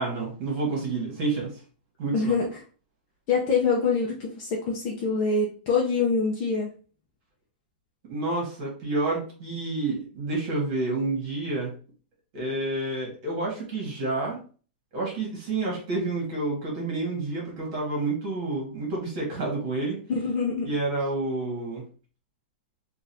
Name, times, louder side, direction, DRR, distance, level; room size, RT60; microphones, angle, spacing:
voice 1, 0.0-1.5 2.0-2.3 8.1-11.7 12.3-14.4 14.9-20.0 20.7-21.8, right 2 dB, 40° right, -2 dB, 1.7 m, -29 dB
voice 2, 2.1-2.6 3.3-6.7 20.1-20.7, left 4 dB, 35° left, -3 dB, 0.7 m, -25 dB
3.9 x 2.5 x 2.8 m, 0.39 s
supercardioid pair, 165°, 5 cm